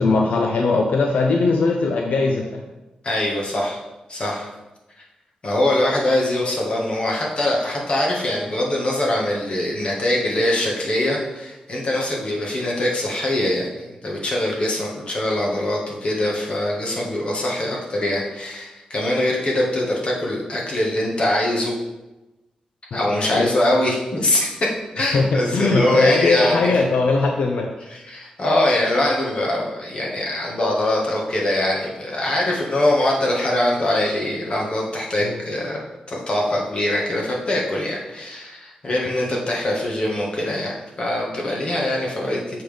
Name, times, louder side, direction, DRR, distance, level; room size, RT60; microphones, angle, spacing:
voice 1, 0.0-2.6 22.9-23.5 25.1-27.7 35.2-35.4 39.1-39.2, left 3 dB, 80° left, 2 dB, 0.6 m, -20 dB
voice 2, 3.0-3.8 4.1-4.5 5.0-5.1 5.4-21.7 22.9-24.6 24.9-26.7 27.9-42.6, left 1 dB, 45° left, -2 dB, 1.6 m, -23 dB
7.6 x 5.6 x 3.5 m, 1.0 s
wide cardioid pair, 110°, 2 cm